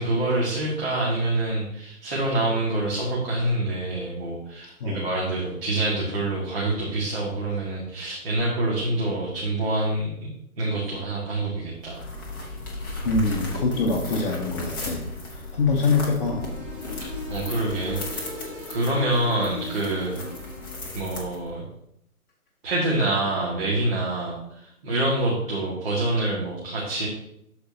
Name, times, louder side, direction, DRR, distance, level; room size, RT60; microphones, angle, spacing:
voice 1, 0.0-10.3 10.6-12.0 17.3-18.3 18.7-20.2 20.9-21.6 22.6-27.1, right 2 dB, 40° right, -5 dB, 1.8 m, -26 dB
sound 1, 11.8-21.7, left 2 dB, 15° left, 0.7 m, -36 dB
voice 2, 13.0-15.0 15.3-16.4, left 3 dB, 40° left, -2 dB, 1.0 m, -24 dB
sound 2, 16.2-21.0, left 3 dB, 20° right, 2.5 m, -39 dB
12.5 x 4.4 x 2.8 m, 0.75 s
figure-of-eight pair, 145°, 45 cm